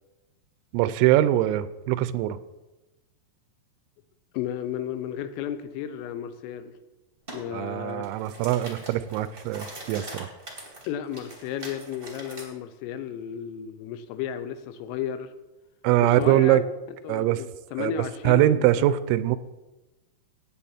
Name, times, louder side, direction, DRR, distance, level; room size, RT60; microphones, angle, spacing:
voice 1, 0.7-2.4 7.5-10.3 15.8-16.6 17.1-17.4 17.8-17.9 18.3-19.4, right 14 dB, 90° right, 3.3 m, -22 dB
voice 2, 4.3-6.7 7.3-8.1 10.8-15.3 16.0-16.6 17.0-19.0, left 9 dB, 85° left, 3.4 m, -33 dB
sound 1, 7.3-7.4 7.9-12.5, right 2 dB, 40° right, 0.7 m, -42 dB
18.0 x 8.2 x 4.4 m
omnidirectional pair, 5.9 m